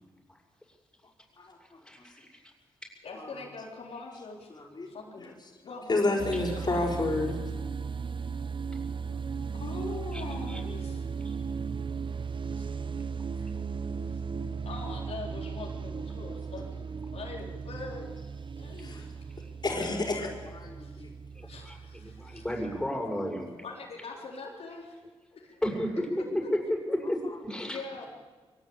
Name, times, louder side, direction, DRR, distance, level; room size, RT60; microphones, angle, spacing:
voice 1, 1.6-2.4 10.1-10.6 11.2-11.4 19.4-19.5 21.3-23.5 25.6-26.2 26.9-27.8, equal, 5° left, 0 dB, 7.2 m, -34 dB
voice 2, 3.0-4.5 4.9-5.3 5.6-6.3 9.5-11.0 12.5-12.8 13.4-13.5 14.0-14.2 14.6-16.9 17.1-18.1 18.6-19.1 20.1-20.3 20.6-21.0 21.4-22.4 23.6-25.0 25.3-25.6 27.7-28.1, left 4 dB, 70° left, -2 dB, 4.1 m, -43 dB
voice 3, 5.9-7.4 18.8-19.1 19.6-20.3 20.5-21.1, left 2 dB, 40° left, 1 dB, 5.4 m, -29 dB
sound 1, 6.2-22.9, right 5 dB, 50° right, 0.9 m, -36 dB
23.0 x 18.0 x 8.9 m, 1.4 s
cardioid pair, 65°, 11 cm